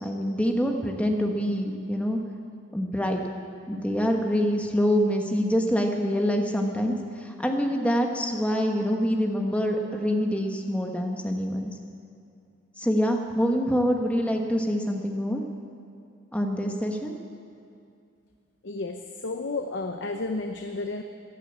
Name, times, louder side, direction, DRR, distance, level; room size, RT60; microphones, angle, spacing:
voice 1, 0.0-2.2 2.7-3.2 3.7-11.7 12.8-15.4 16.3-17.2, equal, 5° left, 2 dB, 1.2 m, -25 dB
voice 2, 18.6-19.0 19.2-21.0, left 3 dB, 60° left, 5 dB, 0.7 m, -31 dB
15.0 x 11.0 x 8.6 m, 2.5 s
head